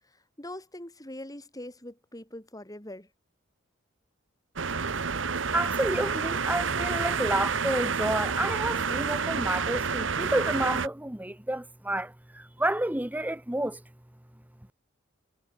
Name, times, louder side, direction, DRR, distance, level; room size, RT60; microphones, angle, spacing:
voice 1, 0.0-3.1, left 1 dB, 20° left, 4.5 m, -43 dB
sound 1, 4.6-10.9, right 5 dB, 65° right, 1.1 m, -29 dB
voice 2, 5.5-13.8, right 1 dB, 10° right, 1.0 m, -30 dB
head